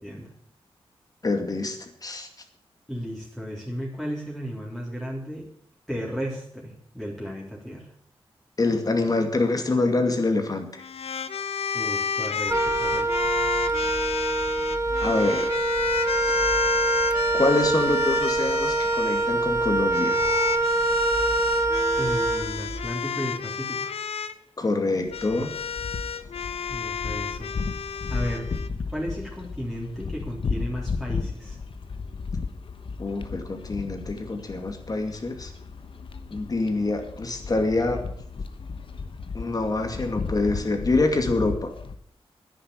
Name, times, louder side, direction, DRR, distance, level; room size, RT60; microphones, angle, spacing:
voice 1, 0.0-0.3 2.9-5.5 5.9-7.9 11.7-13.3 22.0-24.0 26.7-27.5 28.1-28.5 28.9-31.6, equal, 5° left, -4 dB, 3.6 m, -34 dB
voice 2, 1.2-2.3 8.6-10.8 15.0-15.6 17.3-20.2 24.6-25.5 33.0-35.5 36.3-38.0 39.3-41.7, left 2 dB, 40° left, 5 dB, 2.4 m, -25 dB
sound 1, 10.8-19.3 19.9-24.3 25.1-28.7, left 7 dB, 80° left, 0.8 m, -31 dB
Wind instrument woodwind instrument, 12.5-22.9, right 2 dB, 25° right, 1.7 m, -24 dB
sound 2, 25.1-42.0, left 4 dB, 60° left, 1.1 m, -34 dB
10.0 x 10.0 x 8.2 m, 0.67 s
wide cardioid pair, 95°, 10 cm